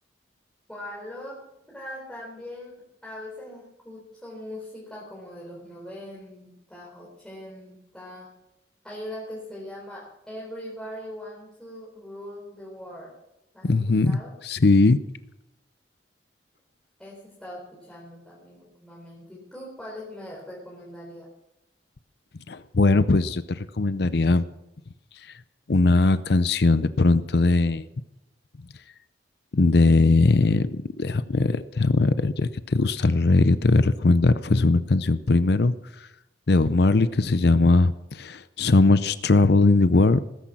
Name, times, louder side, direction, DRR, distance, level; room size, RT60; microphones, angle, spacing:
voice 1, 0.7-1.4 1.7-2.7 3.0-8.3 8.8-13.1 13.5-13.7 14.0-14.3 17.0-21.3, left 1 dB, 5° left, -6 dB, 4.4 m, -41 dB
voice 2, 13.6-15.0 22.5-24.4 25.7-27.9 29.5-35.7 36.5-40.2, left 3 dB, 65° left, 14 dB, 0.6 m, -20 dB
19.5 x 10.5 x 6.1 m, 0.88 s
head